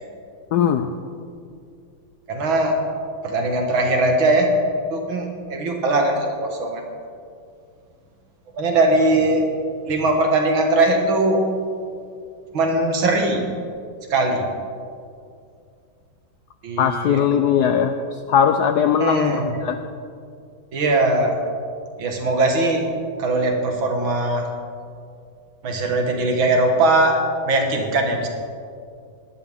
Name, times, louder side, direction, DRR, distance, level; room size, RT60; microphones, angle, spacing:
voice 1, 0.5-0.9 16.8-19.8, left 8 dB, 80° left, 8 dB, 0.9 m, -19 dB
voice 2, 2.3-2.7 3.2-4.5 4.9-6.8 8.5-9.4 9.9-11.4 12.5-13.4 14.1-14.5 16.6-17.3 19.0-19.5 20.7-21.3 22.0-22.9 23.2-24.4 25.6-27.2 27.4-28.3, right 2 dB, 70° right, 2 dB, 2.3 m, -20 dB
18.5 x 12.0 x 3.6 m, 2.3 s
omnidirectional pair, 2.3 m